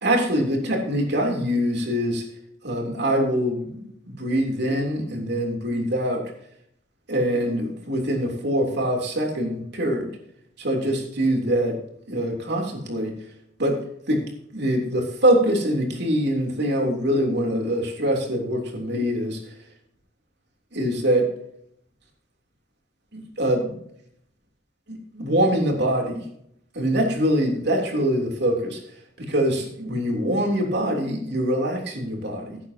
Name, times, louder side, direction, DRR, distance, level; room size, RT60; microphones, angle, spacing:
voice 1, 0.0-2.2 2.6-6.3 7.1-10.1 10.6-13.1 13.6-14.2 14.5-19.4 20.7-21.3 23.1-23.8 24.9-26.2 26.7-28.8 29.2-32.6, equal, 60° right, 2 dB, 3.3 m, -24 dB
15.0 x 11.0 x 2.9 m, 0.69 s
head